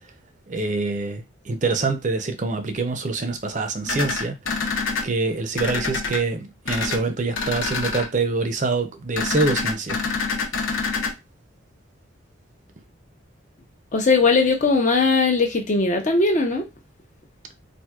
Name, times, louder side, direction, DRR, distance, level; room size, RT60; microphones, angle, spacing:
voice 1, 0.5-4.4 5.0-10.0, right 3 dB, 40° right, 0.5 m, -25 dB
sound 1, 3.9-5.0 5.6-6.2 6.6-7.0 7.3-8.0 9.2-11.1, left 4 dB, 80° left, 1.0 m, -26 dB
voice 2, 13.9-16.6, left 3 dB, 35° left, 0.6 m, -19 dB
4.3 x 2.6 x 2.3 m
head